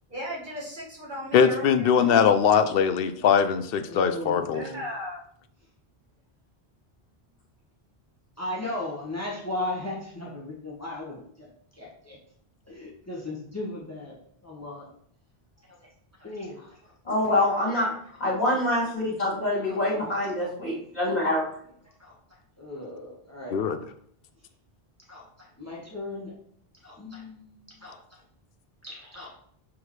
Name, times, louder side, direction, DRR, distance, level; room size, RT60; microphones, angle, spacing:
voice 1, 0.1-1.9 4.5-5.2, equal, 50° right, -5 dB, 2.0 m, -36 dB
voice 2, 1.3-4.6 23.5-23.8, left 7 dB, 70° left, 11 dB, 0.7 m, -21 dB
voice 3, 3.8-4.8 8.4-11.5 11.7-12.2 12.7-14.2 14.4-14.9 15.7-15.8 16.2-16.9 17.8-17.9 19.5-20.5 22.0-22.1 22.6-23.6 25.1-26.3 26.8-28.0 28.8-29.3, left 2 dB, 15° left, -3 dB, 1.3 m, -37 dB
voice 4, 17.1-17.9 18.2-21.4, left 1 dB, 45° left, -5 dB, 2.6 m, -25 dB
7.0 x 4.6 x 3.2 m, 0.64 s
omnidirectional pair, 1.0 m